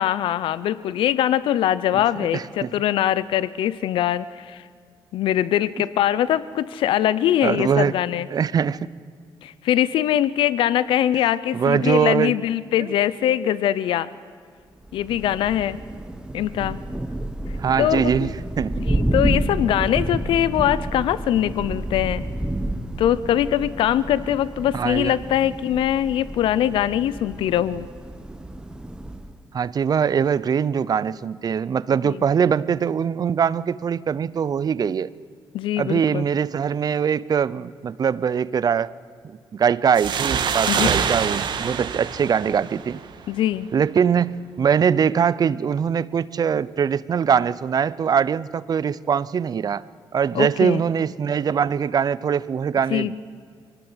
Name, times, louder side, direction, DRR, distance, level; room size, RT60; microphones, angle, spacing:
voice 1, 0.0-4.6 5.1-8.3 9.4-14.1 14.9-15.8 16.3-16.8 17.8-18.3 18.9-22.2 23.0-27.9 32.0-32.2 35.5-36.2 40.7-40.9 43.3-43.7 50.3-50.8 52.9-53.2, left 11 dB, 85° left, 17 dB, 0.6 m, -22 dB
voice 2, 2.3-2.7 7.4-7.9 8.3-8.9 11.5-12.3 12.8-12.9 17.6-18.3 18.6-18.8 24.7-25.1 29.5-35.1 35.8-38.9 39.5-43.0 43.7-49.8 50.1-53.2, right 7 dB, 50° right, 19 dB, 0.7 m, -22 dB
Thunder, 14.8-29.4, right 1 dB, 10° right, 1.3 m, -30 dB
sound 1, 40.0-43.3, right 7 dB, 65° right, 1.6 m, -25 dB
23.5 x 18.5 x 8.0 m, 2.1 s
cardioid pair, 85°, 9 cm